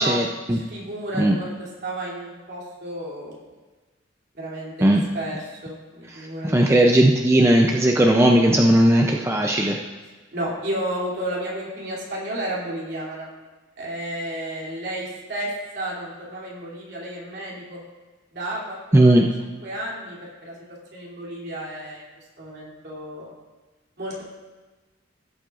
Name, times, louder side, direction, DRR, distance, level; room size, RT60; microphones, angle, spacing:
voice 1, 0.0-0.6 1.2-1.4 4.8-5.0 6.1-9.8 18.9-19.2, right 1 dB, 15° right, 1 dB, 0.5 m, -17 dB
voice 2, 0.5-3.5 4.3-6.8 10.3-13.3 13.8-17.8 18.3-20.6 20.9-22.0 22.4-23.3 24.0-24.2, right 1 dB, 55° right, -5 dB, 2.9 m, -32 dB
16.5 x 7.6 x 2.5 m, 1.3 s
head